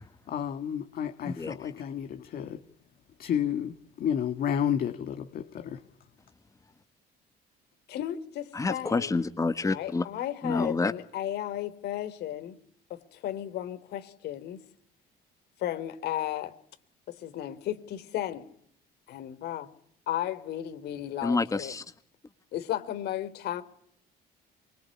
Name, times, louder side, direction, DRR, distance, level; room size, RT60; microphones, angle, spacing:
voice 1, 0.3-2.6 3.2-5.8, left 9 dB, 60° left, 1.9 m, -31 dB
voice 2, 1.2-1.5 8.5-10.0 10.4-10.9 21.2-21.8, left 3 dB, 20° left, 1.6 m, -28 dB
voice 3, 7.9-9.1 9.6-12.6 13.1-14.6 15.6-16.5 17.2-18.4 19.1-19.7 20.1-21.7 22.5-23.6, left 12 dB, 75° left, 3.4 m, -34 dB
25.0 x 24.0 x 9.8 m
cardioid pair, 110°, 17 cm